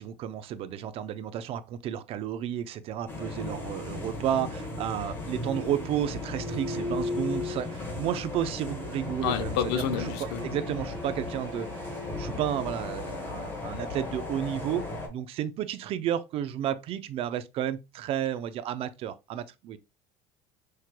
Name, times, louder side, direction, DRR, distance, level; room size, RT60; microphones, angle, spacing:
voice 1, 0.0-11.7 12.2-14.8 15.1-19.8, right 10 dB, 45° right, 0.5 m, -32 dB
sound 1, 3.1-15.1, left 3 dB, 15° left, 1.4 m, -36 dB
sound 2, 5.5-13.3, right 3 dB, 85° right, 1.4 m, -47 dB
voice 2, 9.2-10.5, left 8 dB, 80° left, 0.8 m, -29 dB
5.7 x 3.2 x 2.2 m
supercardioid pair, 125°, 13 cm